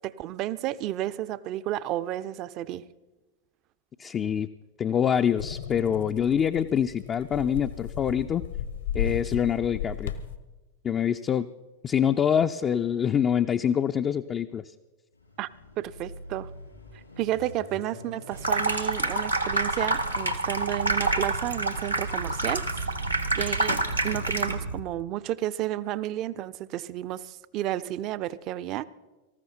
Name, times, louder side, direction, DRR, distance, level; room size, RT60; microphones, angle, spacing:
voice 1, 0.0-2.8 15.4-15.5 15.8-16.5 17.2-22.6 23.3-23.8 24.0-28.9, right 14 dB, 40° right, 16 dB, 0.5 m, -31 dB
voice 2, 4.0-4.5 4.8-8.4 8.9-10.1 10.8-11.5 11.8-14.6, left 8 dB, 25° left, 7 dB, 0.4 m, -25 dB
sound 1, 5.4-10.4, left 8 dB, 65° left, 1.1 m, -34 dB
Car passing by / Accelerating revving vroom, 15.1-21.2, left 1 dB, 85° left, 5.1 m, -48 dB
Water tap faucet / Sink (filling or washing), 18.3-24.8, right 2 dB, 90° right, 1.1 m, -27 dB
18.5 x 14.5 x 4.4 m, 1.2 s
figure-of-eight pair, 90°, 0 cm